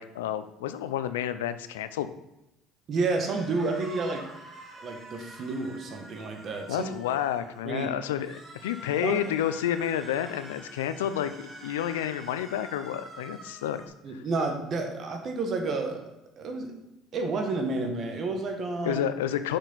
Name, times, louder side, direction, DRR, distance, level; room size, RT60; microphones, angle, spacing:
voice 1, 0.0-2.1 6.7-13.8 14.1-14.2 18.8-19.6, left 10 dB, 90° left, 12 dB, 0.4 m, -30 dB
voice 2, 2.9-4.3 4.7-6.9 7.6-7.9 9.0-9.2 14.0-16.0 16.4-16.7 17.1-19.0, right 3 dB, 50° right, 4 dB, 1.5 m, -30 dB
sound 1, 3.1-7.6 8.1-13.9, right 1 dB, 35° right, 2.1 m, -47 dB
6.3 x 6.3 x 4.1 m, 0.90 s
hypercardioid pair, 75°, 0 cm